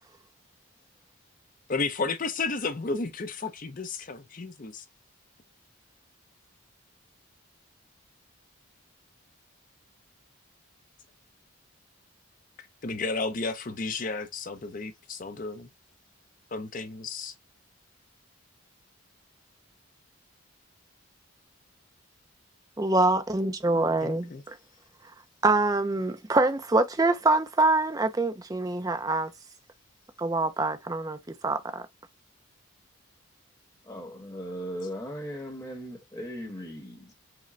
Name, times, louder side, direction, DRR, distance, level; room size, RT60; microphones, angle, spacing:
voice 1, 1.7-4.8 12.8-15.7 16.5-17.3 24.0-24.4, left 3 dB, 40° left, 0.5 m, -32 dB
voice 2, 22.8-24.6 25.4-29.3 30.2-31.8, right 2 dB, 15° right, 0.4 m, -25 dB
voice 3, 33.9-37.1, equal, 15° left, 1.1 m, -38 dB
4.8 x 2.2 x 3.1 m
head